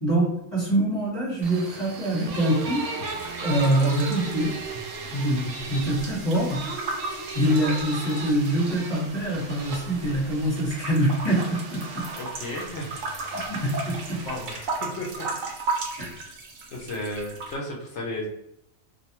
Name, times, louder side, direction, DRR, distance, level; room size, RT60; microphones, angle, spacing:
voice 1, 0.0-2.8 3.4-4.5 5.1-6.6 7.3-11.8 13.3-14.2 16.0-16.1, right 1 dB, 25° left, -8 dB, 1.0 m, -24 dB
sound 1, 1.4-15.6, right 3 dB, 85° right, 1.1 m, -37 dB
sound 2, 3.0-5.1 5.3-8.7 9.3-10.3 10.7-17.6, right 3 dB, 65° right, 0.9 m, -35 dB
voice 2, 12.2-12.9 14.2-15.2 16.1-16.3 16.7-18.3, left 1 dB, 65° left, -1 dB, 0.7 m, -34 dB
2.5 x 2.1 x 2.8 m, 0.80 s
omnidirectional pair, 1.6 m